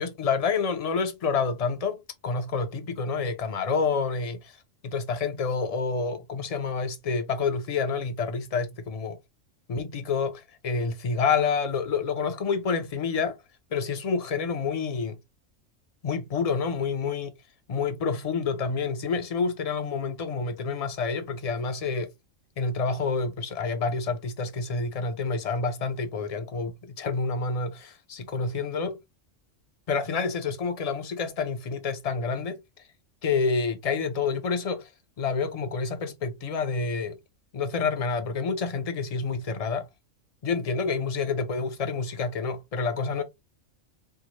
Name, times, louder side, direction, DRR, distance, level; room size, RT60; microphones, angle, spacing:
voice 1, 0.0-4.6 4.8-9.2 9.7-13.4 13.7-15.2 16.0-17.3 17.7-22.1 22.6-29.0 29.9-32.6 33.2-34.9 35.2-37.2 37.5-39.9 40.4-43.2, left 5 dB, 45° left, 0.4 m, -28 dB
4.6 x 2.0 x 2.9 m
omnidirectional pair, 1.3 m